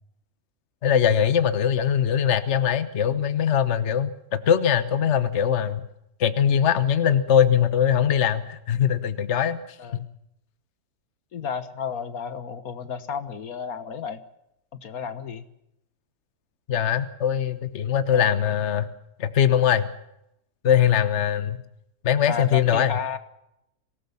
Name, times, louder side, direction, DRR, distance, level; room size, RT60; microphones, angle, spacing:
voice 1, 0.8-5.8 6.2-10.0 16.7-18.9 19.2-19.9 20.6-21.6 22.0-22.9, left 9 dB, 50° left, 12 dB, 1.4 m, -21 dB
voice 2, 11.3-14.2 14.7-15.5 18.1-18.4 22.3-23.2, left 6 dB, 75° left, 12 dB, 1.8 m, -32 dB
25.5 x 18.0 x 7.1 m, 0.82 s
omnidirectional pair, 1.6 m